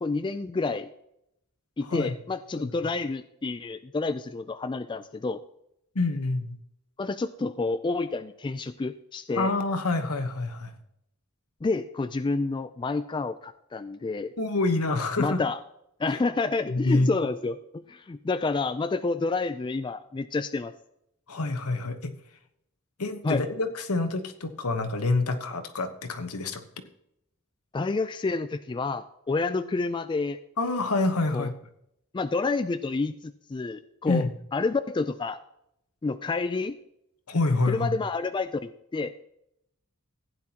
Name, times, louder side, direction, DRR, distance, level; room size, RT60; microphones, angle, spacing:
voice 1, 0.0-0.9 1.8-5.4 7.0-9.5 11.6-14.3 15.2-15.6 16.0-20.7 23.2-23.4 27.7-30.4 31.3-31.5 32.1-34.2 34.5-35.4 36.0-36.8 37.7-39.1, left 3 dB, 20° left, 11 dB, 0.3 m, -29 dB
voice 2, 5.9-6.6 9.3-10.7 14.4-15.4 16.1-16.2 16.7-17.1 21.3-22.1 23.0-26.6 30.6-31.5 34.1-34.3 37.3-37.9, left 2 dB, 80° left, 7 dB, 1.1 m, -27 dB
15.5 x 9.6 x 2.9 m, 0.78 s
head